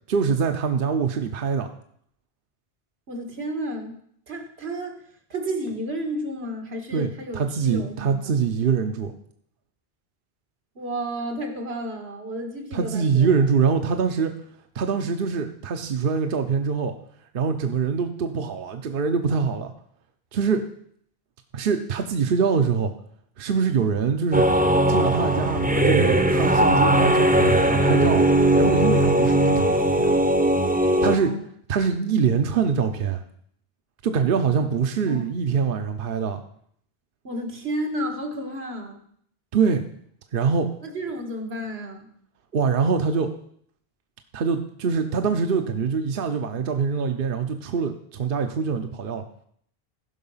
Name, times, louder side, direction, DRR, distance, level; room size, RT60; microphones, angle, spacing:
voice 1, 0.1-1.7 6.9-9.1 12.7-14.3 14.7-16.9 17.3-19.7 20.3-20.6 21.5-22.9 23.4-24.5 24.9-28.2 28.6-30.2 31.0-31.4 31.7-33.2 34.0-36.4 39.5-39.8 40.3-40.7 42.5-43.3 44.3-49.2, right 5 dB, 65° right, 6 dB, 0.9 m, -24 dB
voice 2, 3.1-4.0 4.3-5.0 5.3-8.4 10.8-13.3 31.0-31.5 35.1-35.3 37.2-39.0 40.8-42.1, right 1 dB, 85° right, 4 dB, 1.9 m, -32 dB
sound 1, 24.3-31.1, right 1 dB, 10° right, 0.7 m, -19 dB
15.0 x 5.8 x 5.5 m, 0.65 s
omnidirectional pair, 1.0 m